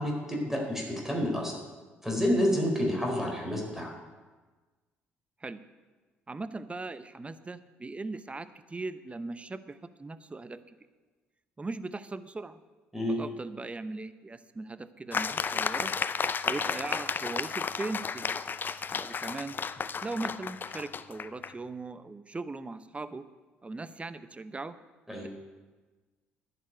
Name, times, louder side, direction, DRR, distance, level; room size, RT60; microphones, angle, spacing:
voice 1, 0.0-1.5 2.0-3.9 12.9-13.2 25.1-25.3, equal, 5° right, 0 dB, 4.0 m, -29 dB
voice 2, 6.3-10.6 11.6-12.6 13.1-15.9 16.4-18.4 18.9-19.6 20.0-23.2 23.6-24.8 25.2-25.3, right 3 dB, 20° right, 13 dB, 0.9 m, -39 dB
sound 1, 15.1-21.5, left 6 dB, 35° left, 0.6 m, -33 dB
11.0 x 7.0 x 9.5 m, 1.3 s
hypercardioid pair, 55°, 6 cm